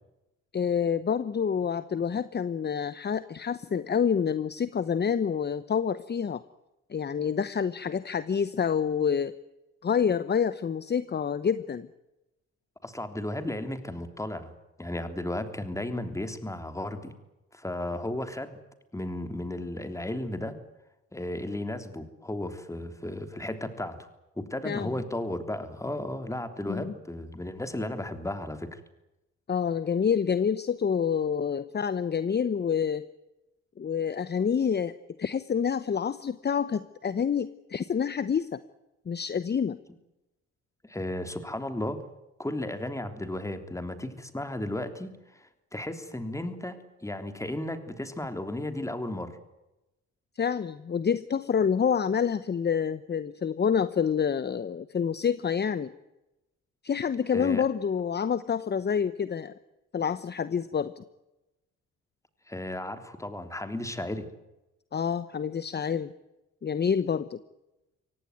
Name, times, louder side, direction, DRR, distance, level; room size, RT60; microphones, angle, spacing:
voice 1, 0.5-6.4 6.9-9.3 9.8-11.9 24.6-24.9 26.7-26.9 29.5-33.1 33.8-34.9 35.2-38.6 39.1-39.8 50.4-55.9 56.8-59.5 59.9-61.0 64.9-66.1 66.6-67.4, left 7 dB, 35° left, 15 dB, 1.0 m, -27 dB
voice 2, 12.8-14.5 14.8-17.1 17.5-18.6 18.9-20.6 21.1-24.1 24.3-28.8 40.8-42.0 42.4-49.4 57.3-57.6 62.5-64.3, left 1 dB, 10° left, 9 dB, 3.4 m, -34 dB
24.5 x 18.0 x 9.4 m, 0.97 s
cardioid pair, 90°, 30 cm